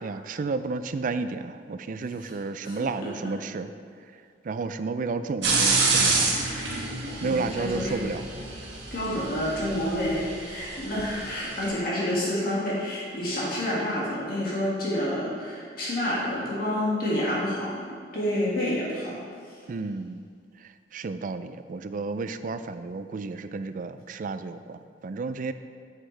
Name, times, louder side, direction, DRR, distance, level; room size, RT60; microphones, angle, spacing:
voice 1, 0.0-3.7 4.4-6.4 7.2-8.3 19.7-20.2 20.6-25.5, right 4 dB, 50° right, 11 dB, 0.4 m, -32 dB
voice 2, 2.6-3.1 7.2-8.0 8.9-19.1, left 1 dB, 55° left, -7 dB, 2.0 m, -29 dB
sound 1, 5.4-11.7, right 3 dB, 80° right, 1.5 m, -28 dB
8.2 x 8.0 x 3.3 m, 2.2 s
head